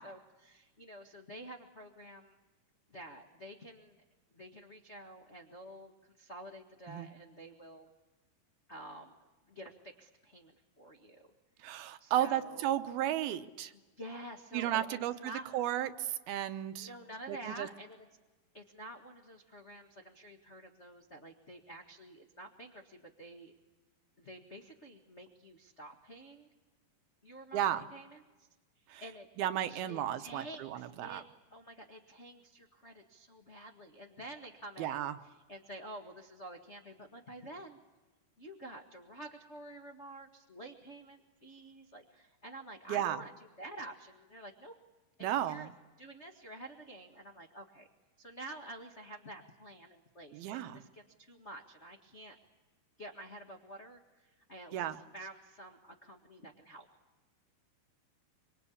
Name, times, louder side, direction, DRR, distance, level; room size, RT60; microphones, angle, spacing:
voice 1, 0.0-2.4 2.9-4.0 4.3-5.9 6.2-7.9 8.7-9.1 9.5-11.3 12.0-12.7 13.7-15.5 16.7-18.1 18.5-23.5 24.2-26.5 27.2-28.2 28.8-29.3 29.7-31.2 31.5-37.8 38.4-43.3 43.6-44.7 45.2-45.7 46.0-47.9 48.2-52.3 53.0-56.9, right 1 dB, 85° left, 0 dB, 0.6 m, -49 dB
voice 2, 11.6-13.7 14.5-16.9 17.3-17.7 27.5-27.8 28.9-29.0 29.4-31.2 34.8-35.1 42.9-43.2 45.2-45.7 50.3-50.8 54.7-55.0, right 11 dB, 80° right, 9 dB, 2.8 m, -34 dB
25.5 x 24.5 x 8.5 m, 1.2 s
omnidirectional pair, 4.4 m